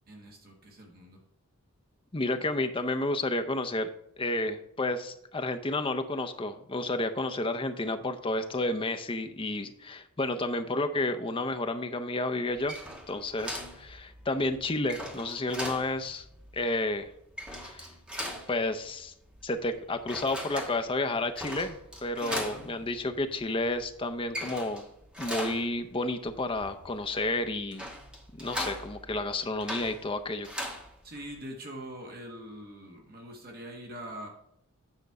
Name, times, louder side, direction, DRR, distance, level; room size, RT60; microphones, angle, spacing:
voice 1, 0.1-1.2 22.2-22.9 31.0-34.3, right 1 dB, 45° right, 1 dB, 1.6 m, -43 dB
voice 2, 2.1-12.8 13.1-16.2 16.5-17.1 17.5-17.9 18.5-19.1 19.4-24.9 25.2-27.8 28.4-30.5, left 2 dB, 25° left, 8 dB, 0.6 m, -31 dB
sound 1, 12.5-31.4, equal, 5° right, 1.3 m, -41 dB
9.0 x 5.3 x 4.7 m, 0.77 s
head